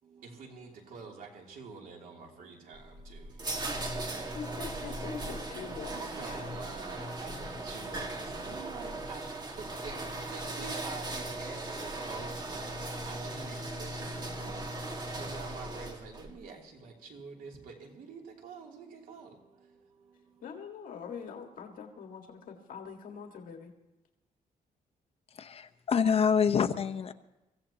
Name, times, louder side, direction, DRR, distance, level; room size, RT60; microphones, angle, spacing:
voice 1, 0.0-5.3 5.8-20.5, right 4 dB, 75° right, 3.1 m, -48 dB
sound 1, 2.8-16.3, right 2 dB, 30° right, 1.8 m, -38 dB
voice 2, 4.3-6.5 20.4-23.7, left 6 dB, 70° left, 1.9 m, -43 dB
voice 3, 25.3-27.1, left 7 dB, 45° left, 0.9 m, -26 dB
24.5 x 15.5 x 2.9 m
cardioid pair, 140°, 15 cm